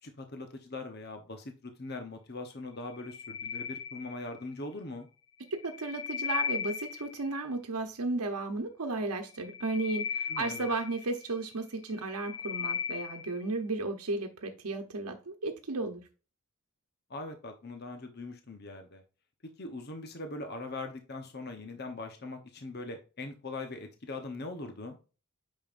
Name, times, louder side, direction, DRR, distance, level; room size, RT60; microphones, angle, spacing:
voice 1, 0.0-5.1 10.3-10.7 17.1-19.0 19.6-25.0, left 2 dB, 45° left, 0.9 m, -41 dB
sound 1, 2.8-4.5 5.5-7.3 9.3-11.4 11.9-13.4, left 6 dB, 80° left, 1.1 m, -37 dB
voice 2, 5.6-16.0, right 3 dB, 90° right, 0.9 m, -34 dB
8.7 x 5.4 x 2.5 m
head